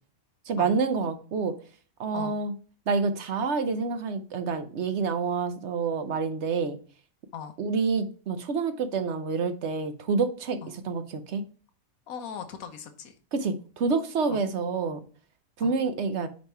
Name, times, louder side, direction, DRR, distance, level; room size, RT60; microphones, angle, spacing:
voice 1, 0.5-1.5 2.0-2.5 2.9-6.8 7.6-11.4 13.3-15.0 15.6-16.3, right 4 dB, 60° right, 1.0 m, -28 dB
voice 2, 12.1-13.2 14.3-14.4 15.6-15.7, left 7 dB, 85° left, 1.3 m, -39 dB
5.4 x 5.2 x 4.4 m
omnidirectional pair, 1.5 m